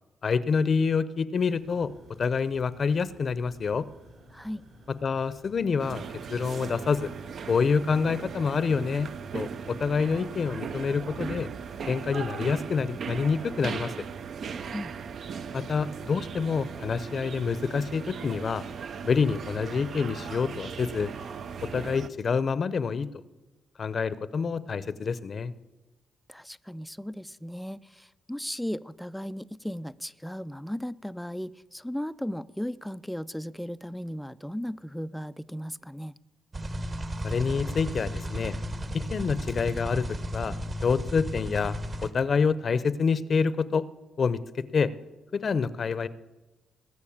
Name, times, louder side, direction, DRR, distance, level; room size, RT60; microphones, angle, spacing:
voice 1, 0.2-1.9 2.2-3.8 5.0-6.0 6.3-7.1 7.5-11.5 11.9-13.9 15.5-18.6 19.0-21.1 21.6-23.1 23.8-25.5 37.2-38.6 39.1-40.6 40.8-43.8 44.2-44.9 45.3-46.1, left 5 dB, 50° left, 16 dB, 0.7 m, -27 dB
sound 1, 1.6-20.8, right 1 dB, 75° right, 5.2 m, -54 dB
voice 2, 4.3-4.6 14.7-14.9 26.3-36.2, equal, 5° left, 13 dB, 0.4 m, -36 dB
sound 2, 5.8-22.1, right 6 dB, 60° right, 0.6 m, -38 dB
sound 3, 36.5-42.1, equal, 35° right, 1.2 m, -34 dB
19.0 x 6.5 x 8.7 m, 1.1 s
cardioid pair, 95°, 0 cm